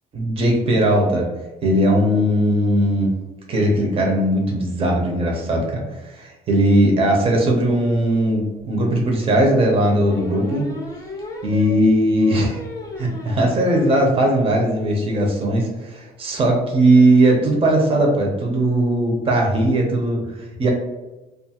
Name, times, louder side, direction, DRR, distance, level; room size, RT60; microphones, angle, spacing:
voice 1, 0.1-1.2 1.6-3.1 3.5-10.7 11.4-12.6 13.0-20.7, right 1 dB, 35° right, 0 dB, 0.6 m, -18 dB
sound 1, 8.6-8.7 9.8-14.1 14.5-14.6 14.9-15.0 15.2-15.4, left 2 dB, 20° left, 0.6 m, -35 dB
2.5 x 2.4 x 2.8 m, 1.1 s
cardioid pair, 110°, 17 cm